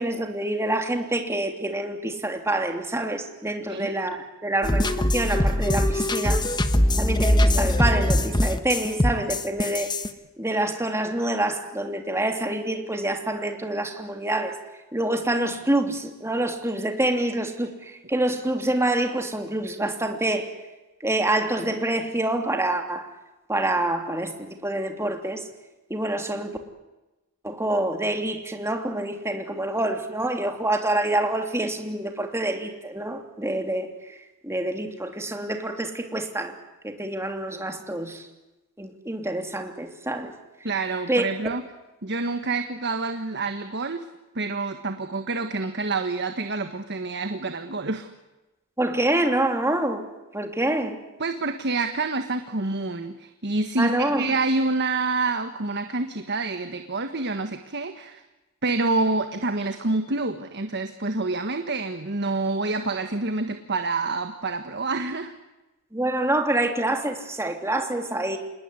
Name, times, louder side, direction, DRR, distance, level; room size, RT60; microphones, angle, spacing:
voice 1, 0.0-6.5 7.0-9.9 10.4-14.6 14.9-20.5 21.0-23.1 23.5-25.4 25.9-26.6 27.4-34.1 34.4-36.6 36.8-38.3 38.8-40.3 41.1-41.2 48.8-50.0 50.3-51.0 53.8-54.3 65.9-68.4, right 1 dB, 10° right, 5 dB, 3.0 m, -26 dB
sound 1, 4.6-10.1, left 1 dB, 20° left, 1.4 m, -22 dB
voice 2, 40.6-41.6 42.0-44.0 44.3-48.1 51.2-58.2 58.6-65.3, right 3 dB, 50° right, 7 dB, 1.6 m, -27 dB
27.5 x 20.5 x 9.8 m, 1.1 s
head